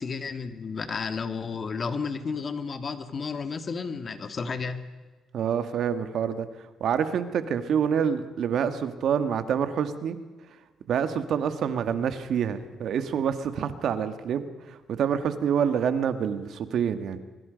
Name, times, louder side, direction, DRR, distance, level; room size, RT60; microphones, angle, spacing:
voice 1, 0.0-4.8, left 5 dB, 45° left, 9 dB, 2.0 m, -32 dB
voice 2, 5.3-10.2 10.9-17.2, right 7 dB, 70° right, 10 dB, 1.8 m, -27 dB
24.5 x 24.0 x 5.2 m, 1.3 s
cardioid pair, 90°, 0 cm